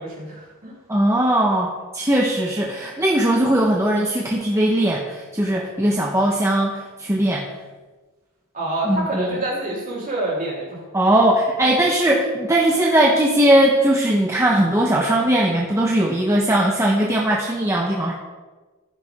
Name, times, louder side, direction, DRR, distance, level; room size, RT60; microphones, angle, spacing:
voice 1, 0.0-0.8 8.5-10.8, right 1 dB, 35° right, -4 dB, 3.8 m, -27 dB
voice 2, 0.9-7.5 8.8-9.4 10.9-18.1, right 1 dB, 15° right, -2 dB, 1.0 m, -19 dB
14.5 x 10.5 x 3.7 m, 1.3 s
head